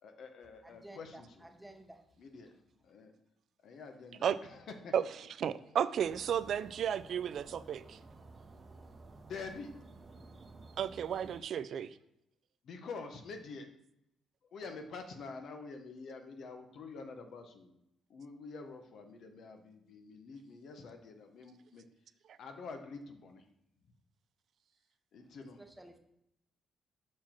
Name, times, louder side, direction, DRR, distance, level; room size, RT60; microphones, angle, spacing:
voice 1, 0.0-1.3 2.2-2.6 2.8-3.1 3.6-4.9 9.3-9.7 12.6-13.7 14.5-17.7 18.1-21.8 22.4-23.4 25.1-25.6, left 4 dB, 65° left, 6 dB, 0.9 m, -47 dB
voice 2, 0.6-2.0 25.6-26.0, right 1 dB, 5° right, 4 dB, 0.9 m, -53 dB
voice 3, 4.9-8.0 10.8-12.0 22.3-22.4, right 8 dB, 65° right, 14 dB, 0.3 m, -33 dB
sound 1, 6.0-11.4, right 3 dB, 35° right, 0.8 m, -54 dB
5.8 x 4.7 x 4.4 m, 0.81 s
cardioid pair, 90°, 0 cm